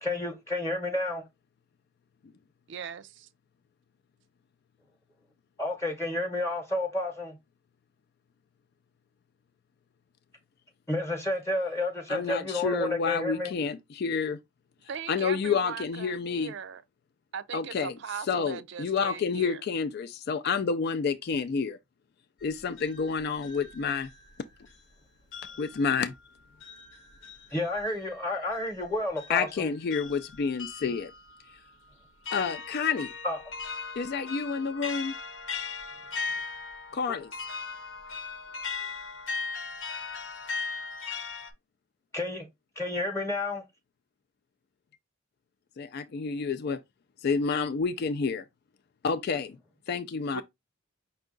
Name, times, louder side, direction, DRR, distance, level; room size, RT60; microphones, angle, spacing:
voice 1, 0.0-1.2 5.6-7.4 10.9-13.5 27.5-29.7 33.2-33.4 37.1-37.2 42.1-42.5 42.8-43.6, left 2 dB, 15° left, 0.9 m, -30 dB
voice 2, 2.7-3.3 14.9-16.8 17.3-19.6 50.3-50.4, right 7 dB, 60° right, 0.4 m, -39 dB
voice 3, 12.1-14.4 15.1-16.5 17.5-17.9 18.3-21.8 22.4-24.1 25.6-26.1 29.3-31.1 32.3-33.1 34.0-35.1 36.9-37.3 45.8-46.8 47.2-48.4 49.0-49.6 49.9-50.4, left 5 dB, 50° left, 0.4 m, -29 dB
sound 1, 22.4-24.9 25.3-41.5, left 4 dB, 70° left, 0.9 m, -39 dB
5.4 x 2.4 x 3.7 m
head